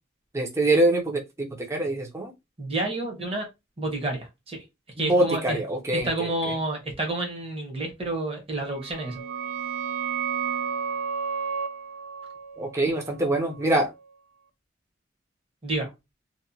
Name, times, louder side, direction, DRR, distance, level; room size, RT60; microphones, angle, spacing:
voice 1, 0.3-2.3 5.0-6.6 12.6-13.9, right 1 dB, 15° right, 0.5 m, -24 dB
voice 2, 2.6-3.5 3.8-4.6 5.0-5.6 5.9-9.2 15.6-15.9, right 2 dB, 30° right, 0.9 m, -29 dB
sound 1, 8.7-14.1, right 7 dB, 80° right, 0.3 m, -32 dB
2.8 x 2.1 x 2.6 m
head